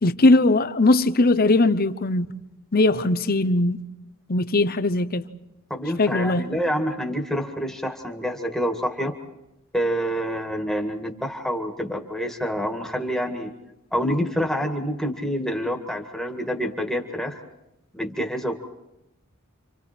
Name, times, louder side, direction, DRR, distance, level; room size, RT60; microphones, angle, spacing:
voice 1, 0.0-2.3 2.7-3.8 4.3-5.2 6.0-6.4, left 2 dB, 45° left, 0.9 m, -19 dB
voice 2, 5.7-9.1 9.7-13.5 13.9-17.4 17.9-18.6, equal, ahead, 1.9 m, -27 dB
29.5 x 26.5 x 4.5 m
head